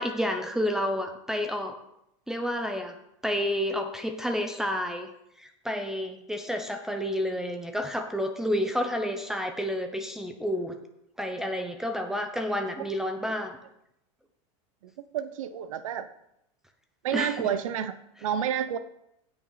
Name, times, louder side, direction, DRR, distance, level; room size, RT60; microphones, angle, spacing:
voice 1, 0.0-1.7 2.3-2.9 3.2-5.1 5.4-10.7 11.2-13.6 17.1-17.4, equal, 5° right, 5 dB, 0.7 m, -30 dB
voice 2, 15.1-16.1 17.0-17.9 18.2-18.8, right 9 dB, 85° right, 11 dB, 0.8 m, -29 dB
16.0 x 6.2 x 4.0 m, 0.81 s
supercardioid pair, 160°, 17 cm